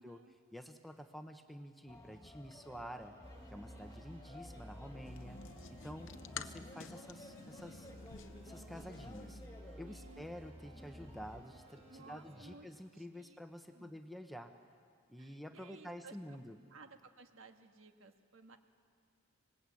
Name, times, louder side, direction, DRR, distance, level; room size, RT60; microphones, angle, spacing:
voice 1, 0.0-0.3 5.8-6.5 9.8-10.3 11.9-13.4 13.7-13.9 15.2-16.4 16.7-18.6, right 3 dB, 65° right, 6 dB, 1.5 m, -58 dB
voice 2, 0.5-3.2 3.5-5.4 5.7-7.9 8.4-9.4 9.8-14.6 15.1-16.6, equal, ahead, 6 dB, 0.9 m, -49 dB
sound 1, 1.9-11.4, left 1 dB, 15° left, 1.8 m, -56 dB
sound 2, 3.2-12.5, equal, 30° right, 3.8 m, -54 dB
sound 3, 5.1-9.5, left 7 dB, 60° left, 0.7 m, -51 dB
25.5 x 20.0 x 8.5 m, 2.3 s
head